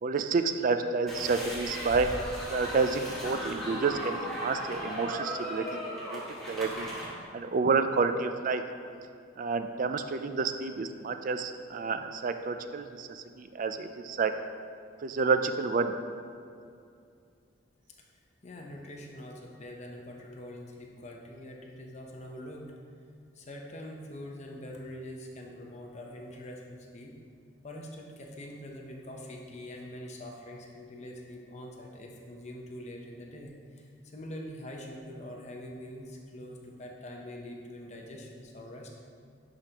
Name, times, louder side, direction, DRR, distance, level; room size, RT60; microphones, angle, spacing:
voice 1, 0.0-2.1 2.5-5.8 6.1-6.2 6.5-6.9 7.3-8.6 9.4-14.3 15.0-15.9, right 4 dB, 45° right, 8 dB, 0.3 m, -29 dB
sound 1, 1.1-7.1, equal, ahead, 1.6 m, -37 dB
voice 2, 18.4-22.7 23.3-27.2 27.6-39.0, left 1 dB, 35° left, 0 dB, 0.8 m, -44 dB
10.5 x 5.1 x 2.9 m, 2.4 s
head